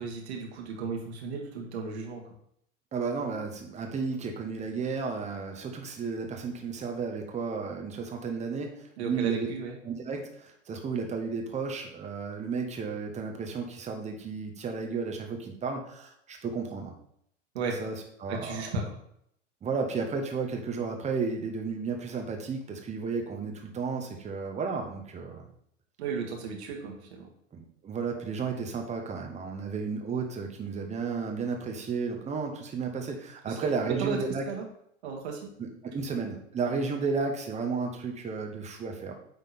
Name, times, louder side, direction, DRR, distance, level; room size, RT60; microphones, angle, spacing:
voice 1, 0.0-2.2 9.0-9.8 17.5-17.7 18.3-18.8 26.0-27.3 33.5-34.2 34.5-34.6 35.0-35.5, right 5 dB, 55° right, 1 dB, 1.7 m, -34 dB
voice 2, 2.9-9.5 9.8-16.9 17.8-17.9 18.2-18.7 19.6-25.5 27.5-34.4 35.6-39.1, right 5 dB, 20° right, 2 dB, 1.2 m, -33 dB
9.2 x 3.7 x 4.2 m, 0.71 s
figure-of-eight pair, 90°, 39 cm